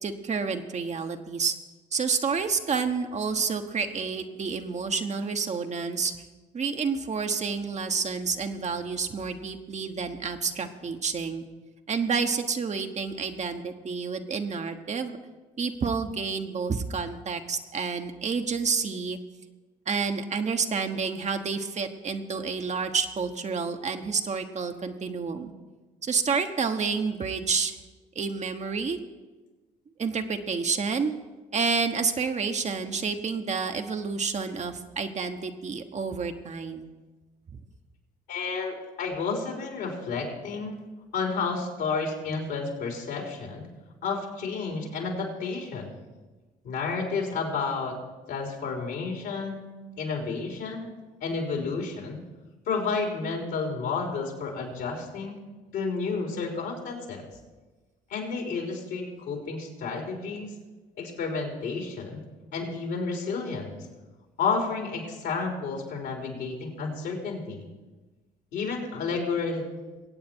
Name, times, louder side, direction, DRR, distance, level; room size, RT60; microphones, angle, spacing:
voice 1, 0.0-1.5 1.9-6.1 6.5-11.4 11.9-15.2 15.6-19.2 19.9-25.5 26.0-27.8 28.1-29.0 30.0-31.1 31.5-36.9, right 5 dB, 40° right, 6 dB, 1.2 m, -29 dB
voice 2, 38.3-40.7 41.1-43.7 44.0-45.9 46.6-48.0 48.3-49.7 50.0-50.9 51.2-52.2 52.7-55.4 55.7-57.2 58.1-60.5 61.0-62.2 62.5-63.8 64.4-67.6 68.5-69.7, left 4 dB, 70° left, 1 dB, 3.7 m, -31 dB
22.5 x 8.6 x 4.5 m, 1.2 s
hypercardioid pair, 60°, 18 cm